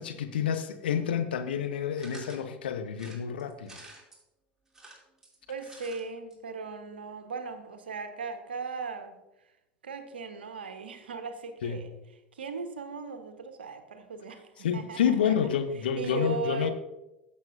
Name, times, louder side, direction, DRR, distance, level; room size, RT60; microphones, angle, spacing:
voice 1, 0.0-3.8 11.6-11.8 14.6-16.7, left 8 dB, 65° left, 8 dB, 0.7 m, -29 dB
sound 1, 2.0-2.4 2.9-4.2 4.7-6.0 6.3-6.4 6.6-6.7, right 2 dB, 10° right, 2.8 m, -50 dB
voice 2, 5.5-9.2 9.8-11.9 12.3-16.7, right 4 dB, 70° right, 8 dB, 1.1 m, -38 dB
15.0 x 7.1 x 2.6 m, 0.95 s
figure-of-eight pair, 80°, 6 cm